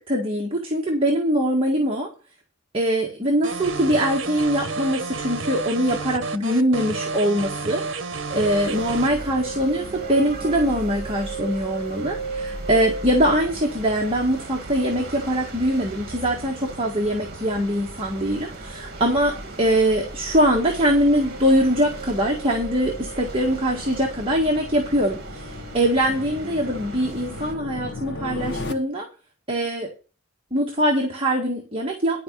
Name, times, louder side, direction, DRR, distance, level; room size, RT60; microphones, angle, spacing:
voice 1, 0.1-2.1 2.7-7.8 8.3-29.1 29.5-29.9 30.5-32.2, equal, 25° right, 0 dB, 1.8 m, -22 dB
sound 1, 3.4-9.1, right 4 dB, 65° right, 1.2 m, -30 dB
sound 2, 8.3-27.5, right 3 dB, 50° right, 2.1 m, -35 dB
sound 3, 18.5-28.7, left 2 dB, 55° left, 1.6 m, -39 dB
11.5 x 5.2 x 8.1 m, 0.35 s
head